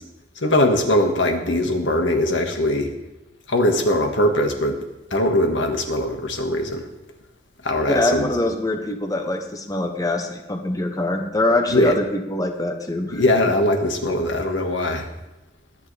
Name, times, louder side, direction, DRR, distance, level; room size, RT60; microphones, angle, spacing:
voice 1, 0.4-2.9 3.5-4.8 5.1-6.9 7.6-8.3 11.7-11.9 13.1-15.1, left 1 dB, 85° left, 3 dB, 1.8 m, -21 dB
voice 2, 7.9-13.2, left 2 dB, 20° left, 5 dB, 1.0 m, -23 dB
23.0 x 9.3 x 3.4 m, 1.0 s
head